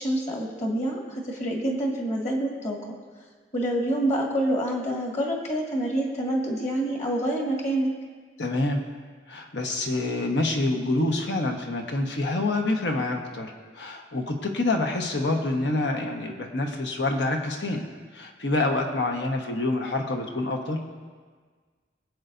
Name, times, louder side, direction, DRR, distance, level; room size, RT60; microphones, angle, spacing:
voice 1, 0.0-2.8 3.5-7.9, right 1 dB, 40° left, -1 dB, 1.8 m, -27 dB
voice 2, 8.4-8.9 9.3-17.9 18.1-20.8, left 2 dB, 80° left, 3 dB, 1.2 m, -27 dB
23.0 x 8.0 x 2.6 m, 1.5 s
head